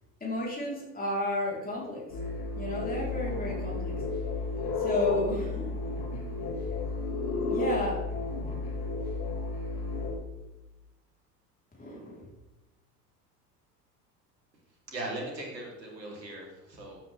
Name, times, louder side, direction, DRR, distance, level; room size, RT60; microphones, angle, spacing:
voice 1, 0.2-2.0 2.6-3.9 4.8-5.7 7.4-8.0 11.8-12.3, left 1 dB, 15° left, -4 dB, 4.6 m, -32 dB
sound 1, 2.1-10.2, left 3 dB, 45° left, 5.1 m, -32 dB
voice 2, 14.9-17.0, right 1 dB, 80° right, -1 dB, 4.0 m, -39 dB
16.0 x 9.1 x 3.7 m, 1.0 s
figure-of-eight pair, 80°, 49 cm